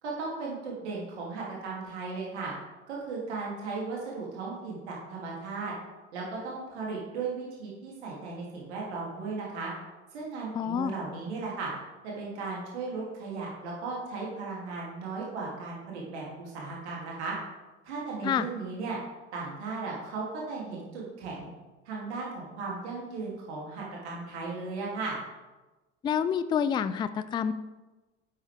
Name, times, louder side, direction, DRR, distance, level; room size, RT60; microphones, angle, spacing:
voice 1, 0.0-2.5 2.9-5.7 6.1-9.7 10.1-11.7 12.0-17.3 17.8-19.0 19.3-21.5 21.8-25.2, right 4 dB, 65° right, -4 dB, 3.1 m, -36 dB
voice 2, 10.6-10.9 18.2-18.5 26.0-27.5, left 8 dB, 15° left, 13 dB, 0.3 m, -28 dB
11.5 x 8.0 x 3.6 m, 1.1 s
figure-of-eight pair, 70°, 36 cm